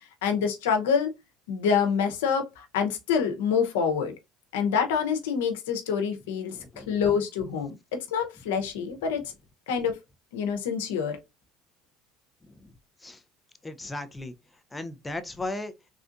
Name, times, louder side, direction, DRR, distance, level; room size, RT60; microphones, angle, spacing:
voice 1, 0.2-1.1 1.5-4.1 4.5-9.3 9.7-10.0 10.3-11.2, left 6 dB, 90° left, 0.8 m, -26 dB
voice 2, 6.5-7.0 12.5-12.7 13.0-13.2 13.6-14.3 14.7-15.7, left 2 dB, 15° left, 0.5 m, -36 dB
3.5 x 2.5 x 2.5 m
supercardioid pair, 95°, 0 cm